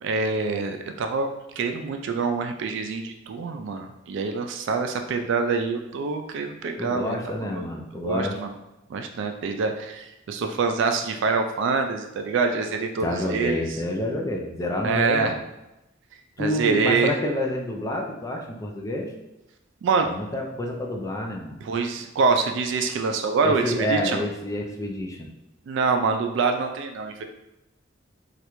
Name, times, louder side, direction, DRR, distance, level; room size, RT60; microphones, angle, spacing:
voice 1, 0.0-1.3 1.6-7.6 8.0-8.5 8.9-13.6 14.8-15.3 16.4-17.1 19.8-20.1 21.6-24.2 25.7-27.2, right 4 dB, 65° right, 6 dB, 0.3 m, -25 dB
voice 2, 6.8-8.4 13.0-15.4 16.4-19.1 20.0-21.6 23.4-25.3, left 1 dB, 15° left, 1 dB, 0.4 m, -28 dB
3.2 x 2.4 x 3.0 m, 0.96 s
head